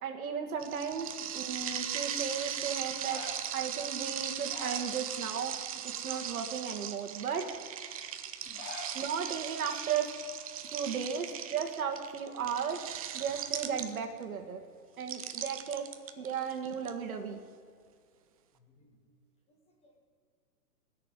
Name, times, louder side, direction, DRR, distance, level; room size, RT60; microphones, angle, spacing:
voice 1, 0.0-5.6 5.8-7.6 8.9-10.1 10.7-14.6 15.0-15.9 16.2-17.4, right 7 dB, 60° right, 4 dB, 1.9 m, -35 dB
sound 1, 0.6-14.2 15.0-16.9, right 9 dB, 25° right, 0.5 m, -38 dB
voice 2, 1.0-1.3 8.4-8.7 12.3-12.4 18.5-19.0 19.5-20.0, left 3 dB, 10° left, 1 dB, 1.6 m, -61 dB
sound 2, 3.0-3.6 4.3-5.5 5.8-6.2 6.8-6.9 8.4-9.0 9.3-9.4 9.6-9.7 10.4-10.7 10.9-12.1 16.1-16.7, left 3 dB, 50° left, 2.9 m, -47 dB
16.0 x 6.7 x 9.6 m, 2.2 s
hypercardioid pair, 135°, 48 cm